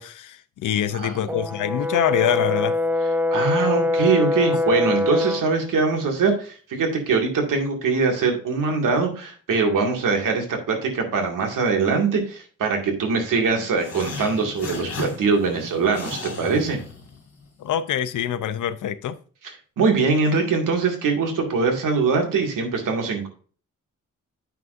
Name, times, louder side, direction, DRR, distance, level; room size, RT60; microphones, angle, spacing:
voice 1, 0.0-2.8 17.6-19.2, left 10 dB, 75° left, 0.7 m, -25 dB
Brass instrument, 1.3-5.5, left 2 dB, 5° right, 0.6 m, -23 dB
voice 2, 3.3-16.8 19.8-23.3, right 4 dB, 85° right, 2.2 m, -22 dB
sound 1, 13.7-17.5, left 4 dB, 50° left, 2.8 m, -36 dB
9.2 x 6.0 x 2.6 m
wide cardioid pair, 125°, 31 cm